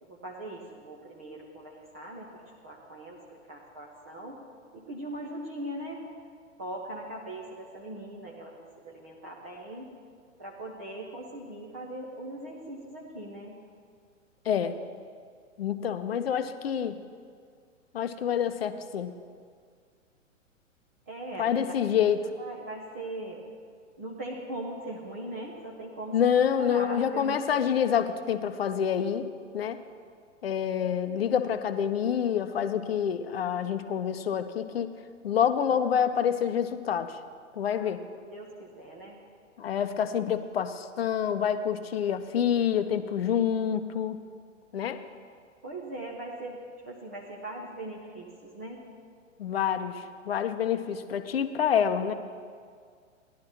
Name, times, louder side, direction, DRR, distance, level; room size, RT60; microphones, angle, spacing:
voice 1, 0.0-4.4 4.7-6.0 6.6-9.9 10.4-13.6 21.1-21.7 22.4-23.4 24.0-27.4 37.8-37.9 38.3-39.2 45.6-46.6 46.8-48.8, right 1 dB, 10° right, -4 dB, 0.4 m, -40 dB
voice 2, 15.6-17.0 17.9-19.1 21.4-22.2 26.1-29.2 29.5-29.8 30.4-34.9 35.2-37.2 37.5-38.0 39.6-44.2 44.7-45.0 49.4-52.1, left 8 dB, 50° left, 10 dB, 0.6 m, -27 dB
17.0 x 11.5 x 2.9 m, 2.1 s
figure-of-eight pair, 115°, 39 cm